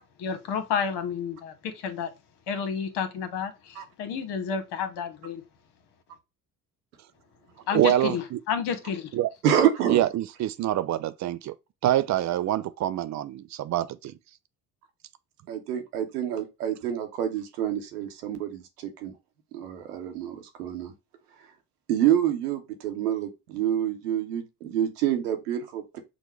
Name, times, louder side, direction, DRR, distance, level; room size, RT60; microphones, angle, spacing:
voice 1, 0.2-2.1 2.5-5.4 7.7-9.1, left 7 dB, 65° left, 1.1 m, -30 dB
voice 2, 7.7-8.4 9.1-9.3 9.9-11.5 11.8-14.1, right 13 dB, 40° right, 0.4 m, -25 dB
voice 3, 9.4-10.0 15.5-19.1 19.5-20.9 21.9-26.0, right 10 dB, 85° right, 0.9 m, -27 dB
6.1 x 2.1 x 3.1 m
hypercardioid pair, 55°, 45 cm